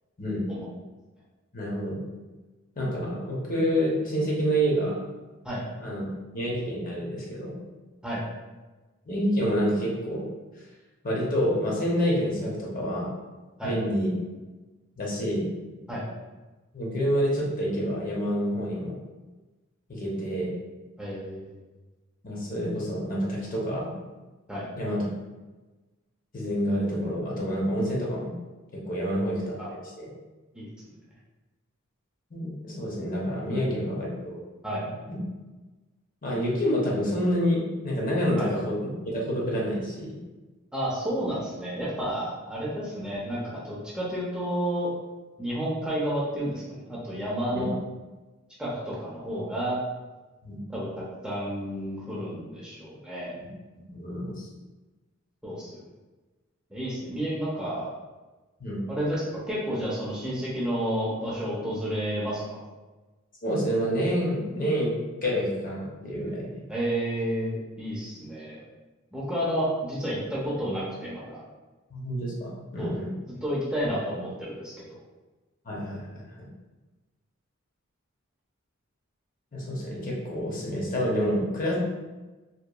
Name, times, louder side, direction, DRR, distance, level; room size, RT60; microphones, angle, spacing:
voice 1, 1.5-2.0 2.8-5.0 5.8-6.1 6.3-7.6 9.1-10.3 11.0-13.1 13.6-14.1 15.0-15.5 16.7-19.0 19.9-20.5 22.2-23.9 24.8-25.1 26.3-28.3 28.7-30.1 32.3-34.4 35.1-35.2 36.2-38.8 39.0-40.2 47.6-47.7 50.4-50.6 53.8-54.5 58.6-58.8 63.4-64.9 65.2-66.5 71.9-73.1 75.7-76.1 76.4-76.5 79.5-81.7, equal, 40° left, -4 dB, 0.6 m, -28 dB
voice 2, 21.0-21.6 24.5-24.7 29.1-29.2 29.6-29.7 30.5-30.9 33.5-33.7 34.6-34.9 38.4-38.5 40.7-44.9 45.4-47.8 48.6-49.8 50.7-50.9 51.2-53.3 55.4-55.8 56.7-57.9 58.9-62.6 66.7-68.6 69.1-71.4 72.8-72.9 73.4-75.0, equal, 5° right, -7 dB, 0.5 m, -31 dB
2.8 x 2.2 x 2.2 m, 1.2 s
head